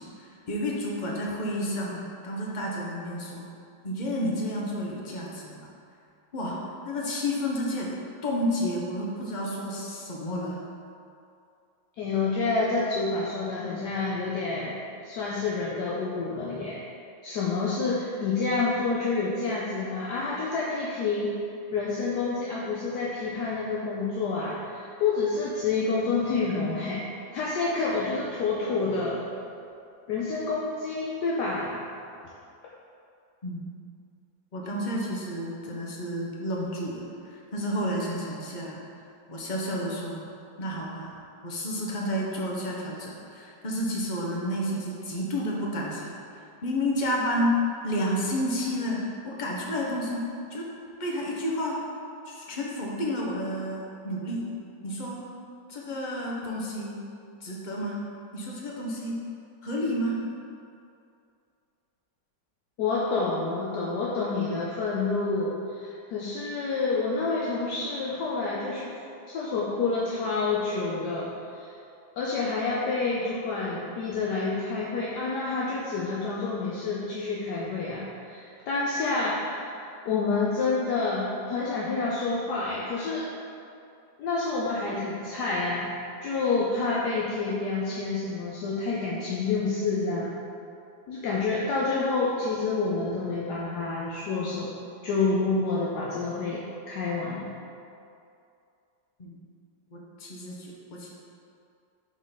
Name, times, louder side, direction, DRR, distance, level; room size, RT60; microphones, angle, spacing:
voice 1, 0.0-3.4 3.8-5.7 6.3-6.6 6.9-7.9 8.2-10.6 33.4-33.7 34.5-38.8 39.3-40.3 40.6-41.1 41.4-46.1 46.6-47.6 47.8-50.2 50.5-50.7 51.0-51.8 52.3-54.5 54.8-55.2 55.7-57.0 57.4-58.0 58.3-59.2 59.6-60.2 99.2-99.4 99.9-101.1, equal, 35° left, -3 dB, 0.8 m, -31 dB
voice 2, 12.0-14.8 15.0-16.8 17.2-21.3 21.7-29.2 30.1-31.8 62.8-69.0 69.3-71.7 72.2-83.3 84.2-85.9 86.2-90.4 91.1-94.8 95.0-97.6, left 3 dB, 75° left, -5 dB, 1.3 m, -28 dB
6.2 x 3.7 x 5.7 m, 2.5 s
omnidirectional pair, 1.9 m